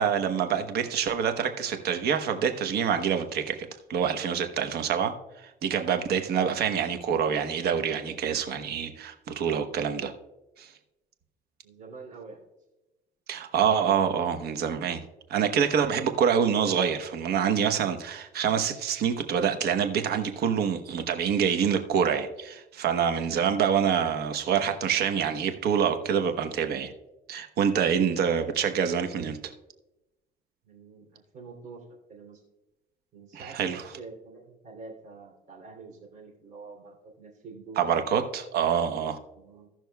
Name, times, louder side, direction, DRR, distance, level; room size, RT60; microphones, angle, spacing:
voice 1, 0.0-3.6 3.9-10.1 10.6-10.7 13.3-15.0 15.3-26.9 27.3-29.5 33.3-33.9 37.8-39.2, right 7 dB, 70° right, 7 dB, 1.0 m, -26 dB
voice 2, 11.6-12.4 30.6-32.4 33.1-38.0 39.3-39.7, right 4 dB, 50° right, 1 dB, 3.0 m, -46 dB
16.5 x 6.1 x 2.3 m, 0.98 s
cardioid pair, 110°, 17 cm